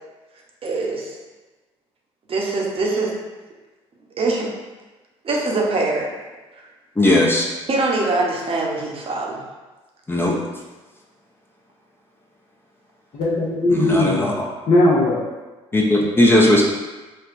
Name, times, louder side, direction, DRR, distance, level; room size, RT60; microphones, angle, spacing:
voice 1, 0.6-1.2 2.3-3.1 4.2-4.5 5.2-6.1 6.5-6.7 7.7-9.4, right 3 dB, 40° right, -2 dB, 0.8 m, -23 dB
voice 2, 7.0-7.5 10.1-10.4 13.7-14.5 15.7-16.6, left 1 dB, 15° left, -2 dB, 0.5 m, -17 dB
voice 3, 13.1-14.3 14.7-15.2 15.7-16.0 16.3-16.5, left 2 dB, 55° left, -6 dB, 0.7 m, -19 dB
4.3 x 2.1 x 2.5 m, 1.2 s
hypercardioid pair, 55°, 15 cm